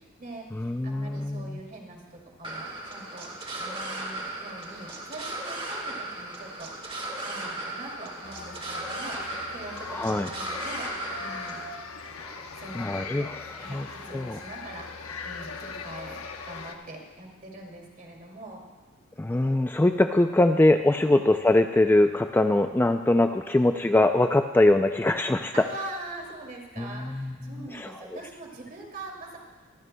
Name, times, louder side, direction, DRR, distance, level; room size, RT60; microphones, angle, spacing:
voice 1, 0.0-2.0 2.4-3.3 3.6-6.9 7.2-10.9 11.2-11.6 12.6-13.3 13.6-14.9 15.2-18.6 21.0-21.2 25.5-29.4, right 2 dB, 40° right, 0 dB, 2.5 m, -43 dB
voice 2, 0.5-1.6 9.9-10.3 12.3-12.4 12.8-13.4 13.7-13.9 14.1-14.4 19.2-25.5 26.8-27.9, left 2 dB, 10° left, 6 dB, 0.3 m, -23 dB
sound 1, 2.4-11.6, right 2 dB, 25° right, 1.8 m, -36 dB
sound 2, 8.2-16.7, left 4 dB, 85° left, 1.0 m, -39 dB
23.5 x 14.0 x 2.2 m, 1.3 s
head